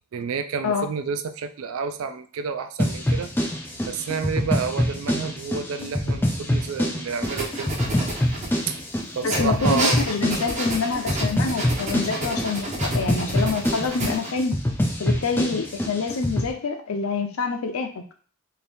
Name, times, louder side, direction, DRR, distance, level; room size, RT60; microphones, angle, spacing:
voice 1, 0.1-3.3 3.9-7.7 8.7-8.8 9.1-10.0, right 5 dB, 65° right, 9 dB, 0.3 m, -29 dB
sound 1, 2.8-16.5, equal, 10° left, 0.3 m, -26 dB
sound 2, 7.2-8.8 9.3-14.3, right 1 dB, 35° right, 0.6 m, -30 dB
voice 2, 9.2-14.6 15.0-18.0, left 4 dB, 70° left, 6 dB, 0.5 m, -26 dB
2.8 x 2.6 x 3.4 m, 0.42 s
head